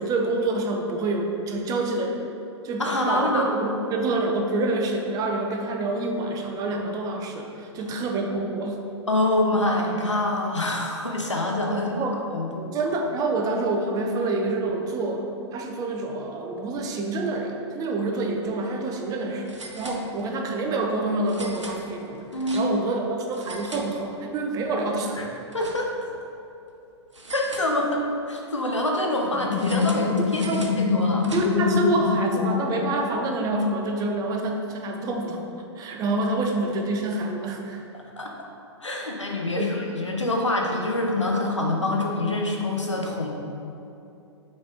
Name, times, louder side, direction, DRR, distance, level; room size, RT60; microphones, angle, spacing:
voice 1, 0.0-2.3 2.6-8.8 11.7-12.2 12.7-22.2 22.5-25.2 30.5-30.6 31.3-37.8 39.5-39.8, right 2 dB, 25° right, 2 dB, 0.6 m, -27 dB
voice 2, 2.8-3.5 9.1-11.9 12.3-12.8 22.3-22.7 25.2-25.3 25.5-25.9 27.3-31.3 38.2-38.5 38.8-43.3, left 1 dB, 90° left, 0 dB, 0.9 m, -26 dB
sound 1, 18.3-18.5 18.8-18.9 19.4-20.5 21.2-23.0 23.3-24.4 24.8-26.2 27.1-28.2 29.5-31.8, right 2 dB, 85° right, 0.7 m, -42 dB
sound 2, 29.2-33.7, left 6 dB, 45° left, 0.5 m, -25 dB
6.4 x 4.3 x 3.6 m, 2.7 s
figure-of-eight pair, 110°, 15 cm